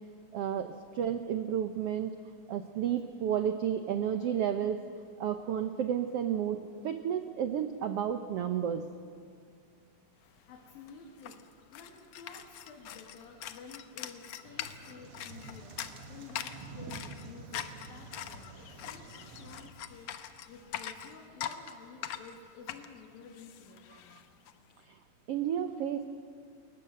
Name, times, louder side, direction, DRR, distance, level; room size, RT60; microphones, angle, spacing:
voice 1, 0.3-2.1 2.5-4.8 5.2-6.6 6.8-8.8 24.9-25.0 25.3-26.0, right 9 dB, 80° right, 8 dB, 1.3 m, -31 dB
sound 1, 10.4-10.5 10.7-24.5, left 10 dB, 65° left, 1.6 m, -43 dB
voice 2, 10.5-11.5 11.7-24.3, left 5 dB, 85° left, 0 dB, 3.8 m, -52 dB
sound 2, 14.4-19.7, right 4 dB, 50° right, 2.1 m, -48 dB
29.5 x 20.5 x 7.7 m, 2.2 s
omnidirectional pair, 4.0 m